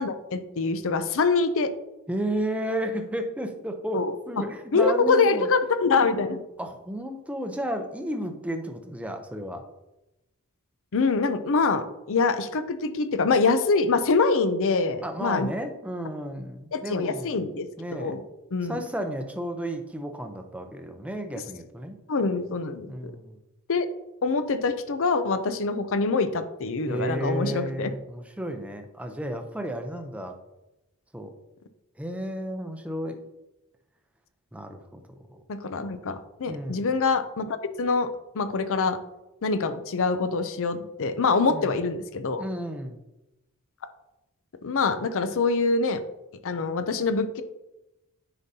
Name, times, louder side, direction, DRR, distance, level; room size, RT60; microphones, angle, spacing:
voice 1, 0.0-1.7 3.9-4.4 4.7-6.4 10.9-15.5 16.7-17.7 18.0-18.2 18.5-18.8 22.1-23.1 23.7-23.9 24.2-27.9 35.5-38.1 38.3-39.0 39.4-42.4 44.6-46.0 46.4-47.4, left 4 dB, 65° left, 11 dB, 0.6 m, -25 dB
voice 2, 2.1-5.5 6.6-9.6 15.0-17.5 17.8-18.2 18.6-22.0 22.9-23.4 26.9-30.4 31.1-31.3 31.9-33.2 34.5-35.0 35.3-35.4 36.5-36.9 41.5-41.7 42.4-43.0, right 1 dB, 5° right, 5 dB, 0.6 m, -33 dB
9.5 x 5.3 x 2.8 m, 0.97 s
head